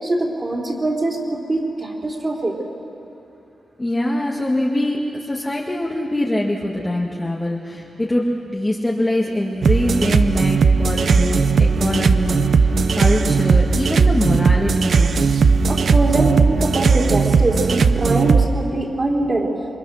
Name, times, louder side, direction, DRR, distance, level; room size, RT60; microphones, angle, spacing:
voice 1, 0.0-2.6 15.7-19.5, right 2 dB, 30° right, -2 dB, 4.2 m, -23 dB
voice 2, 3.8-15.2, left 1 dB, 15° left, -3 dB, 1.9 m, -23 dB
sound 1, 9.6-18.5, right 5 dB, 60° right, 0.8 m, -17 dB
28.0 x 24.5 x 6.5 m, 2.8 s
wide cardioid pair, 115°, 0 cm